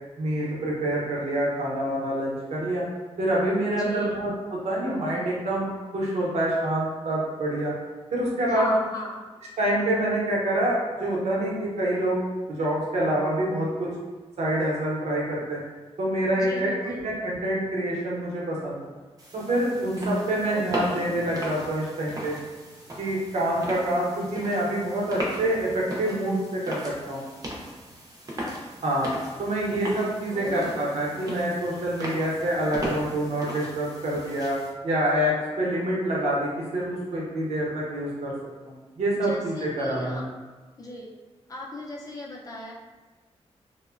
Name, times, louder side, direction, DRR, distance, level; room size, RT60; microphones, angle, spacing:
voice 1, 0.2-2.8 3.2-7.7 8.1-8.7 9.6-12.2 12.5-13.9 14.4-15.6 16.0-18.9 19.3-22.4 23.0-27.2 28.8-29.1 29.4-34.6 34.8-38.3 38.6-40.2, right 1 dB, 85° right, -4 dB, 0.7 m, -26 dB
voice 2, 3.8-4.2 8.5-9.2 16.4-17.1 20.5-21.3 30.3-31.0 39.1-40.2 40.8-41.1 41.5-42.7, left 1 dB, 35° left, -3 dB, 0.4 m, -36 dB
sound 1, 19.2-34.7, equal, 35° right, 0.5 m, -38 dB
2.9 x 2.1 x 2.4 m, 1.3 s
wide cardioid pair, 155°, 11 cm